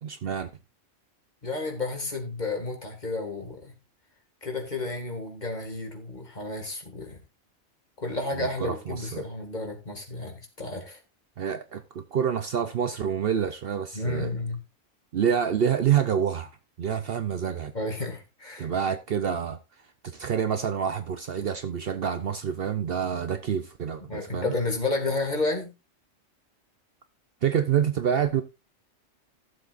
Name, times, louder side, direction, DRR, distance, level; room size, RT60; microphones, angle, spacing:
voice 1, 0.0-0.5 8.3-9.3 11.4-14.3 15.1-16.5 16.8-17.7 18.6-19.6 20.0-24.5 27.4-28.4, right 8 dB, 55° right, 0.8 m, -27 dB
voice 2, 1.4-3.7 4.4-7.2 8.0-11.0 13.9-14.6 17.7-18.7 24.1-25.7, left 2 dB, 35° left, 2.2 m, -31 dB
15.5 x 7.2 x 2.5 m
omnidirectional pair, 1.3 m